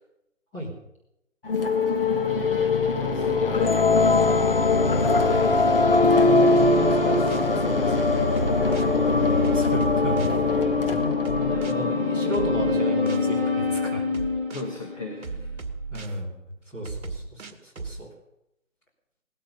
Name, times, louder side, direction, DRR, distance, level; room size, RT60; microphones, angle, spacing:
sound 1, 1.4-14.4, left 4 dB, 45° left, 1.6 m, -23 dB
voice 1, 3.0-6.2 8.6-8.9 14.5-15.3, left 4 dB, 25° left, 1 dB, 1.4 m, -36 dB
voice 2, 5.0-5.6 6.7-8.3 8.8-11.2 11.5-14.0 15.9-16.3 16.7-18.1, equal, 5° left, -7 dB, 2.8 m, -33 dB
sound 2, 5.6-15.2, equal, 40° right, 4.8 m, -27 dB
sound 3, 6.6-7.5 8.4-8.9 9.4-10.4 11.3-11.7 12.3-13.3 14.1-14.7 15.2-16.2 16.9-18.0, right 4 dB, 60° right, 2.1 m, -36 dB
18.5 x 13.0 x 5.5 m, 0.83 s
hypercardioid pair, 170°, 40 cm